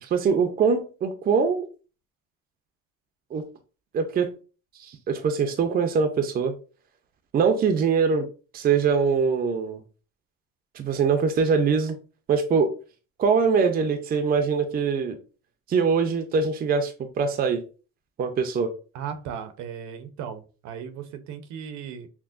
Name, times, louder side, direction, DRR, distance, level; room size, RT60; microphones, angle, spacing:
voice 1, 0.0-1.7 3.3-3.4 3.9-4.3 4.8-6.5 7.3-8.3 8.5-9.8 10.8-12.0 12.3-12.7 13.2-15.2 15.7-17.6 18.2-18.7, right 5 dB, 30° right, 7 dB, 0.5 m, -23 dB
voice 2, 18.9-22.1, right 8 dB, 70° right, 9 dB, 0.7 m, -36 dB
5.9 x 2.1 x 2.5 m, 0.35 s
cardioid pair, 145°, 30 cm